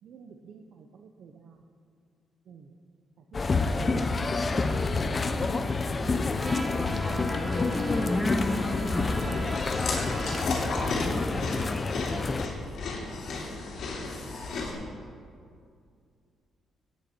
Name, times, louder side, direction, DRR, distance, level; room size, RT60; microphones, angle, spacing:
voice 1, 0.0-1.6 2.4-2.8 3.2-5.5 11.5-14.9, right 5 dB, 65° right, 3 dB, 0.9 m, -52 dB
sound 1, 3.3-12.5, left 3 dB, 30° left, 0.7 m, -28 dB
Trumpet, 6.4-10.6, right 2 dB, 25° right, 1.1 m, -40 dB
voice 2, 7.4-9.1, left 1 dB, 5° left, 6 dB, 1.1 m, -31 dB
Chewing mastication, 8.8-14.7, left 3 dB, 65° left, 3.3 m, -34 dB
17.0 x 9.3 x 4.5 m, 2.3 s
cardioid pair, 90°, 0 cm